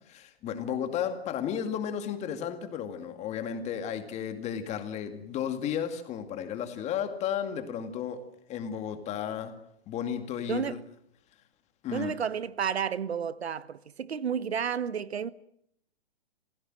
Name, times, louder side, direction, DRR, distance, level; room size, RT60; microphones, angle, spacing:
voice 1, 0.1-8.2 8.5-9.5 9.9-10.8 11.8-12.2, left 8 dB, 20° left, 2.1 m, -33 dB
voice 2, 11.9-15.3, right 7 dB, 90° right, 1.2 m, -31 dB
25.5 x 16.5 x 7.6 m
hypercardioid pair, 145°, 31 cm